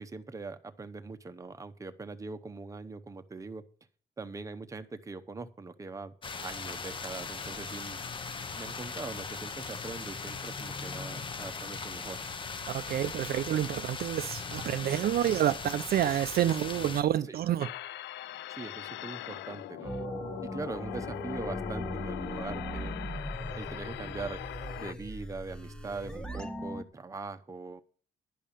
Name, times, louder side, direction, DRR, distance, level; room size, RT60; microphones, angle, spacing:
voice 1, 0.0-3.6 4.2-6.1 6.4-8.0 8.5-12.2 17.3-17.4 18.5-19.9 20.5-22.9 23.6-24.4 24.8-27.8, right 3 dB, 15° right, 0.8 m, -41 dB
sound 1, 6.2-17.0, left 4 dB, 25° left, 0.7 m, -39 dB
voice 2, 12.7-17.7, right 11 dB, 55° right, 0.5 m, -28 dB
sound 2, 17.6-24.9, left 14 dB, 75° left, 0.4 m, -41 dB
sound 3, 19.8-26.8, equal, 5° left, 1.1 m, -39 dB
11.0 x 5.5 x 8.6 m
cardioid pair, 145°, 19 cm